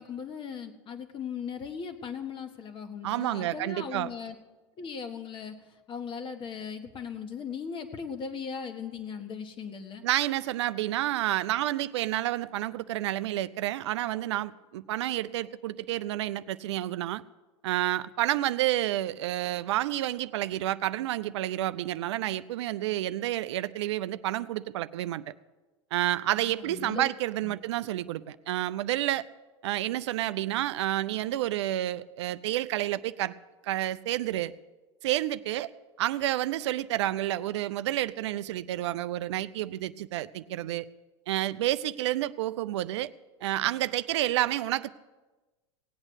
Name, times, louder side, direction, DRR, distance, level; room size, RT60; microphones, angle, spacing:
voice 1, 0.0-4.3 4.8-10.0 26.4-27.1 27.4-27.5, left 6 dB, 35° left, 7 dB, 1.5 m, -38 dB
voice 2, 3.0-4.1 10.0-17.2 17.6-25.2 25.9-29.2 29.6-33.3 33.6-34.5 35.0-35.7 36.0-40.9 41.3-43.1 43.4-44.9, right 14 dB, 70° right, 14 dB, 0.5 m, -29 dB
17.5 x 8.8 x 6.3 m, 1.2 s
hypercardioid pair, 90°, 15 cm